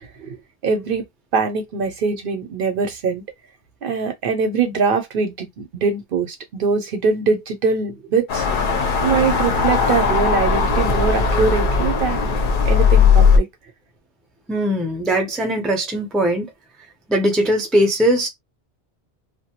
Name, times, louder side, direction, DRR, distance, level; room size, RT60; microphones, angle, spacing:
voice 1, 0.6-1.0 1.3-3.2 3.8-8.5 9.0-12.3 12.7-13.5, right 5 dB, 60° right, 0.7 m, -22 dB
sound 1, 8.3-13.4, left 5 dB, 60° left, 0.6 m, -17 dB
voice 2, 14.5-16.5 17.1-18.3, right 1 dB, ahead, 0.4 m, -20 dB
2.2 x 2.1 x 2.8 m
omnidirectional pair, 1.1 m